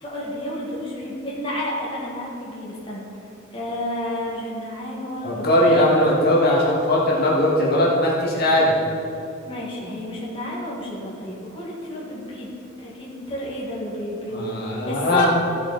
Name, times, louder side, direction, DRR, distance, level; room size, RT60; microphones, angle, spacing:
voice 1, 0.0-3.0 3.5-5.8 9.4-12.5 12.8-14.5 14.9-15.4, left 1 dB, 25° left, -6 dB, 2.2 m, -30 dB
voice 2, 5.2-8.7 14.3-15.3, left 1 dB, 50° left, -5 dB, 2.3 m, -19 dB
15.0 x 7.6 x 4.3 m, 2.9 s
head